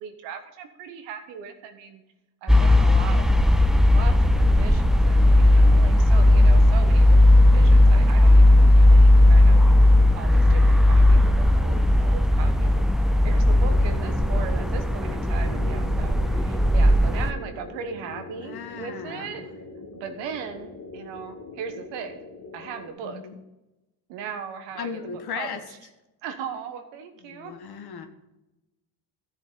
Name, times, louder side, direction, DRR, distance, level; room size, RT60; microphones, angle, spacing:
voice 1, 0.0-2.0 2.4-3.3 3.9-9.7 10.1-12.9 13.2-19.4 19.9-22.2 22.5-23.2 24.1-25.8 26.2-27.5, right 7 dB, 90° right, 7 dB, 1.3 m, -38 dB
sound 1, 2.5-17.3, left 1 dB, ahead, 0.5 m, -16 dB
sound 2, 13.5-22.9, left 3 dB, 45° left, 1.4 m, -42 dB
voice 2, 18.4-19.3 23.0-23.3 24.7-25.6 27.2-28.1, left 6 dB, 60° left, 6 dB, 1.5 m, -36 dB
13.5 x 7.0 x 3.8 m, 0.98 s
supercardioid pair, 70°, 42 cm